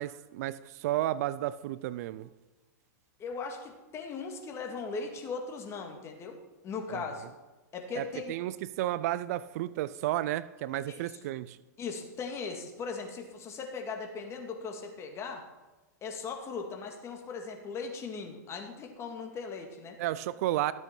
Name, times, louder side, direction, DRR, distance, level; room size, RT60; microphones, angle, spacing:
voice 1, 0.0-2.3 6.9-7.0 8.0-11.6 20.0-20.7, right 14 dB, 60° right, 17 dB, 0.5 m, -32 dB
voice 2, 3.2-6.4 6.6-7.3 7.7-8.3 10.9-11.2 11.8-15.4 16.0-20.0, left 4 dB, 30° left, 3 dB, 2.0 m, -39 dB
13.5 x 8.0 x 4.4 m, 1.1 s
hypercardioid pair, 110°, 10 cm